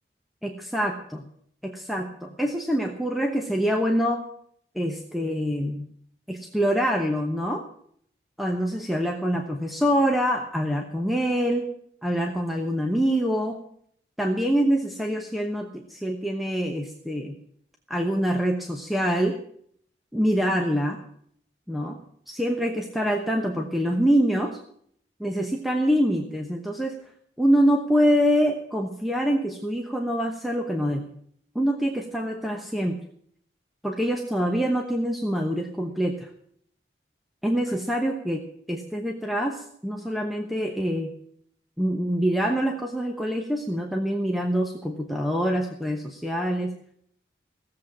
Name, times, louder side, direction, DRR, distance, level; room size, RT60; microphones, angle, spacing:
voice 1, 0.4-1.2 1.6-4.2 4.7-5.8 6.3-7.6 8.4-11.7 12.0-13.6 14.2-17.3 17.9-19.4 20.1-21.0 21.7-22.0 22.3-24.6 25.2-26.9 27.4-31.1 31.5-33.0 33.8-36.3 37.4-38.4 38.7-41.1 41.8-46.7, equal, ahead, 2 dB, 1.0 m, -25 dB
16.0 x 7.7 x 8.6 m, 0.64 s
head